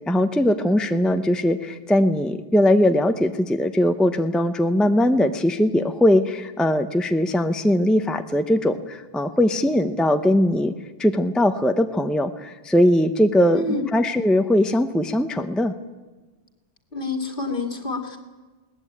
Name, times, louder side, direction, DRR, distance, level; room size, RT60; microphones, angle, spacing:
voice 1, 0.1-10.7 11.0-13.6 13.9-15.7, left 1 dB, ahead, 8 dB, 0.8 m, -20 dB
voice 2, 16.9-18.2, left 3 dB, 55° left, 5 dB, 2.5 m, -27 dB
21.5 x 18.5 x 8.7 m, 1.3 s
omnidirectional pair, 1.1 m